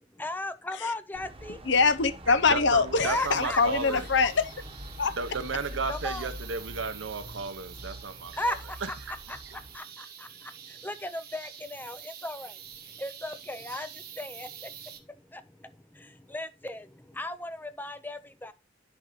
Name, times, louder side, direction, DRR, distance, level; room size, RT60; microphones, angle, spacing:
voice 1, 0.2-1.6 3.0-3.6 3.9-4.0 5.9-6.3 8.4-8.9 9.3-18.5, left 1 dB, 10° left, 0.6 m, -37 dB
sound 1, 1.1-9.8, equal, 30° right, 1.1 m, -44 dB
voice 2, 1.7-4.5 5.0-5.1, left 4 dB, 65° left, 0.8 m, -23 dB
voice 3, 2.5-4.1 5.2-8.4, right 4 dB, 75° right, 0.9 m, -33 dB
sound 2, 2.9-15.0, right 9 dB, 50° right, 1.1 m, -47 dB
10.5 x 5.5 x 3.1 m
head